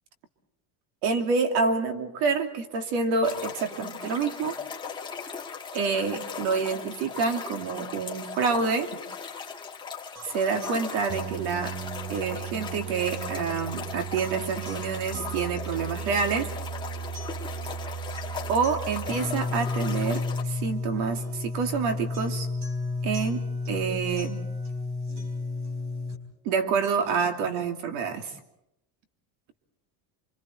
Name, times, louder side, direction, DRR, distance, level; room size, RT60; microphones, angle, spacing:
voice 1, 1.0-4.5 5.7-8.9 10.3-11.8 12.1-16.5 18.5-22.5 23.0-24.4 26.4-28.3, right 5 dB, 75° right, 6 dB, 2.9 m, -27 dB
sound 1, 3.2-20.4, left 6 dB, 10° left, 1.8 m, -38 dB
sound 2, 10.2-26.2, left 1 dB, 45° right, 4.2 m, -33 dB
29.5 x 25.0 x 4.5 m, 0.83 s
cardioid pair, 155°, 39 cm